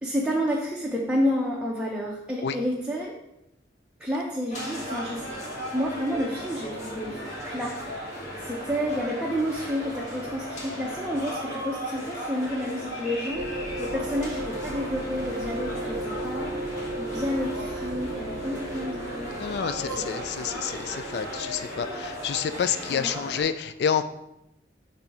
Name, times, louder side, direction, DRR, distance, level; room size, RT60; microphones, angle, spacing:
voice 1, 0.0-3.2 4.0-5.3 5.7-16.5 17.0-19.4 19.8-20.2 22.9-23.1, equal, 5° right, -3 dB, 0.6 m, -30 dB
sound 1, 4.5-23.4, equal, 45° left, 1.8 m, -36 dB
sound 2, 13.3-22.5, right 1 dB, 60° right, 0.7 m, -36 dB
voice 2, 19.4-24.0, left 7 dB, 65° left, 11 dB, 0.3 m, -29 dB
7.2 x 2.7 x 5.8 m, 0.87 s
head